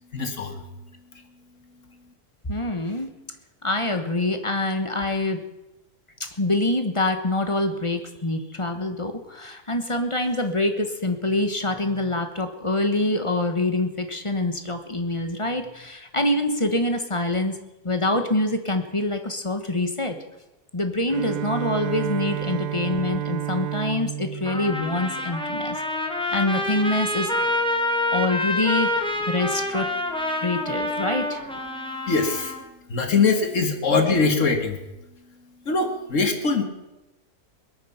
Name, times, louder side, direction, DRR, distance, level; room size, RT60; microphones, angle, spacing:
voice 1, 0.1-0.6 32.1-32.5 32.9-34.8 35.7-36.6, left 4 dB, 55° left, 6 dB, 1.9 m, -22 dB
voice 2, 2.5-3.1 3.6-5.4 6.2-17.5 17.8-20.2 20.7-25.8 26.3-27.3 28.1-29.9 30.4-31.5, left 2 dB, 20° left, 7 dB, 1.1 m, -25 dB
Bowed string instrument, 21.1-25.8, right 10 dB, 85° right, 1.3 m, -31 dB
Trumpet, 24.4-32.6, left 1 dB, 5° left, 1.4 m, -27 dB
21.0 x 9.3 x 5.8 m, 0.97 s
omnidirectional pair, 1.7 m